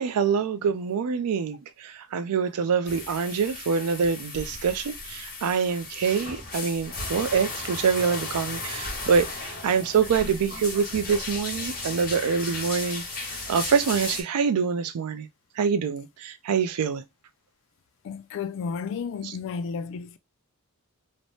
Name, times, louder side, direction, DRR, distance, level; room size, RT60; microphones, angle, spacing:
voice 1, 0.0-15.3 15.6-17.0 19.2-19.3, right 6 dB, 75° right, 0.4 m, -25 dB
sound 1, 2.9-14.2, left 3 dB, 40° left, 1.2 m, -35 dB
voice 2, 18.0-20.2, left 5 dB, 60° left, 0.3 m, -32 dB
3.1 x 2.1 x 2.7 m
head